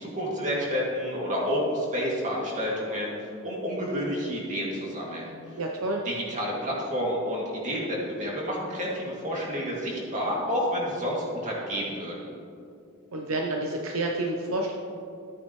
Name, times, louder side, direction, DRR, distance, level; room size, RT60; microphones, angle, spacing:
voice 1, 0.0-5.3 6.1-12.3, equal, 35° right, -4 dB, 2.5 m, -30 dB
voice 2, 5.6-6.0 13.1-14.7, right 2 dB, 70° right, 1 dB, 0.8 m, -29 dB
14.0 x 8.9 x 3.2 m, 2.5 s
head